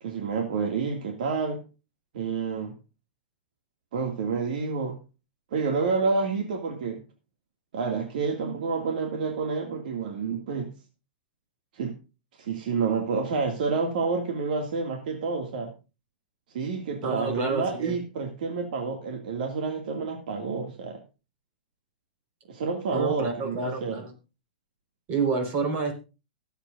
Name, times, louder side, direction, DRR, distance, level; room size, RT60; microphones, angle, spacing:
voice 1, 0.0-1.6 2.1-2.7 3.9-5.0 5.5-7.0 7.7-10.7 11.7-12.0 12.4-15.7 16.5-21.0 22.5-24.0, right 4 dB, 70° right, 3 dB, 2.3 m, -29 dB
voice 2, 17.0-18.0 22.9-24.1 25.1-26.0, right 4 dB, 35° right, 5 dB, 4.7 m, -29 dB
24.0 x 8.2 x 2.6 m, 0.30 s
hypercardioid pair, 130°, 5 cm